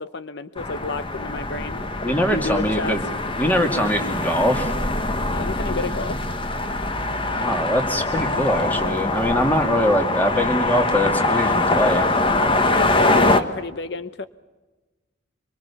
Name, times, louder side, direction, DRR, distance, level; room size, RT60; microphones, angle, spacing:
voice 1, 0.0-3.0 5.3-6.2 12.6-14.3, left 4 dB, 60° left, 12 dB, 0.8 m, -30 dB
sound 1, 0.6-13.4, left 2 dB, 25° left, 1.4 m, -23 dB
voice 2, 2.0-3.1 3.4-4.7 7.4-12.1, equal, 10° left, 4 dB, 2.5 m, -22 dB
25.5 x 24.0 x 7.1 m, 1.2 s
head